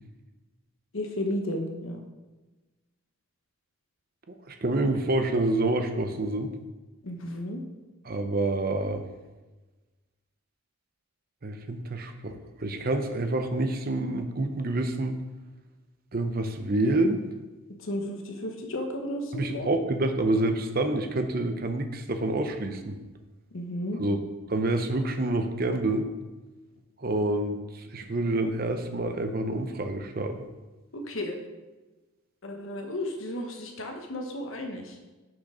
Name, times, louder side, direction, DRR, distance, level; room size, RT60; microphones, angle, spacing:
voice 1, 0.9-2.0 7.0-7.6 17.8-19.7 23.5-24.0 30.9-31.4 32.4-35.0, left 1 dB, 65° left, 3 dB, 1.0 m, -33 dB
voice 2, 4.3-6.5 8.0-9.0 11.4-15.2 16.1-17.2 19.3-23.0 24.0-24.2 24.5-26.1 27.0-30.4, right 2 dB, 40° right, 7 dB, 0.7 m, -27 dB
6.3 x 6.2 x 5.0 m, 1.2 s
head